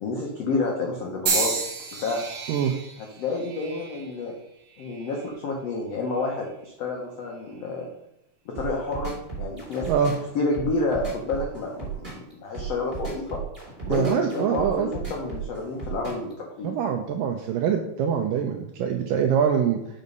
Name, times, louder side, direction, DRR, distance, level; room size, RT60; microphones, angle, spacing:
voice 1, 0.0-1.5 2.0-2.2 3.0-4.3 4.8-7.9 8.4-9.9 10.3-13.4 13.9-16.3 16.6-16.7, left 3 dB, 85° left, -1 dB, 1.4 m, -29 dB
sound 1, 1.3-5.4 6.1-6.5 7.5-7.7, right 4 dB, 55° right, 2.5 m, -32 dB
sound 2, 8.5-16.3, right 6 dB, 15° right, 3.3 m, -35 dB
voice 2, 13.9-14.9 16.6-19.8, right 7 dB, 85° right, 4 dB, 2.0 m, -24 dB
7.1 x 5.5 x 5.2 m, 0.82 s
omnidirectional pair, 4.5 m